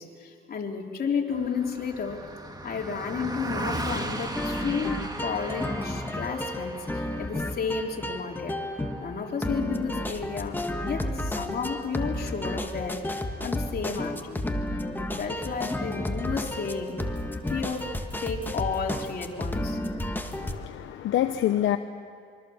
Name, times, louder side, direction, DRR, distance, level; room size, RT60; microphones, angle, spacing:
voice 1, 0.0-2.2 2.6-8.5 9.0-13.0 13.4-14.5 15.0-17.0 17.5-17.8 18.2-19.9, left 5 dB, 50° left, 0 dB, 3.5 m, -32 dB
Car passing by, 1.3-10.9, right 2 dB, 20° right, 2.4 m, -38 dB
sound 1, 4.3-20.6, left 1 dB, 10° left, 1.8 m, -32 dB
voice 2, 20.3-21.8, left 12 dB, 75° left, 8 dB, 0.9 m, -26 dB
26.5 x 23.5 x 7.2 m, 2.2 s
cardioid pair, 90°, 20 cm